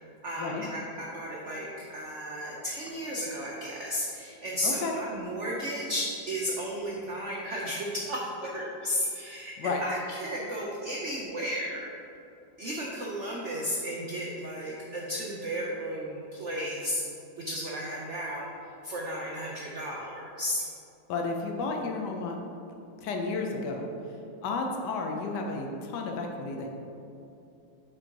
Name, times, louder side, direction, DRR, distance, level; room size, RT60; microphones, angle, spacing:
voice 1, 0.0-9.5 9.8-11.9 12.6-17.0 17.4-18.5 18.8-20.6, equal, 75° right, -3 dB, 0.6 m, -34 dB
voice 2, 4.6-5.0 9.6-9.8 21.1-22.4 23.0-23.9 24.4-26.7, left 3 dB, 70° left, 2 dB, 1.1 m, -32 dB
6.1 x 3.9 x 4.5 m, 2.7 s
omnidirectional pair, 2.1 m